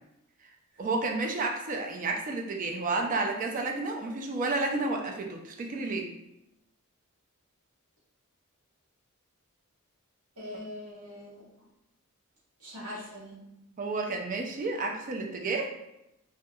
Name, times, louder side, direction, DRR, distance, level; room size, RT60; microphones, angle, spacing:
voice 1, 0.8-6.1 13.8-15.7, right 3 dB, 35° right, 2 dB, 0.3 m, -31 dB
voice 2, 10.4-11.4 12.6-13.6, left 1 dB, 75° right, -7 dB, 1.1 m, -42 dB
2.2 x 2.2 x 2.7 m, 0.86 s
head